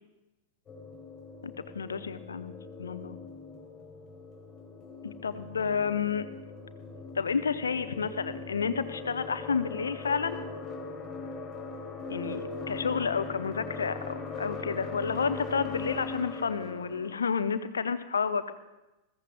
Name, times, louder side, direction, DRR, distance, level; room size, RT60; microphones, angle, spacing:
sound 1, 0.7-17.2, left 4 dB, 25° left, 3.1 m, -40 dB
voice 1, 1.4-2.5 2.8-3.2 5.0-6.3 7.1-10.4 12.1-12.4 12.7-18.5, left 6 dB, 70° left, 11 dB, 0.8 m, -30 dB
20.5 x 15.5 x 2.4 m, 1.0 s
figure-of-eight pair, 90°, 0 cm